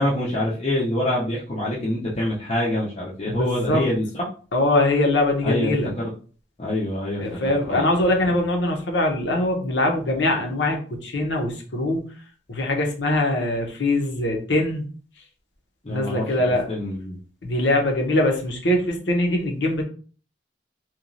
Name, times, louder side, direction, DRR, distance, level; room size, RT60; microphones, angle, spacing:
voice 1, 0.0-4.3 5.4-6.1 6.6-7.4 7.7-7.8 8.3-8.4 15.8-16.2 16.7-17.1, left 1 dB, 35° left, -6 dB, 0.6 m, -25 dB
voice 2, 3.3-3.8 4.5-5.9 7.2-12.0 12.5-14.8 15.9-16.7 17.4-19.8, left 1 dB, 75° left, 1 dB, 0.7 m, -22 dB
2.9 x 2.3 x 2.5 m, 0.40 s
head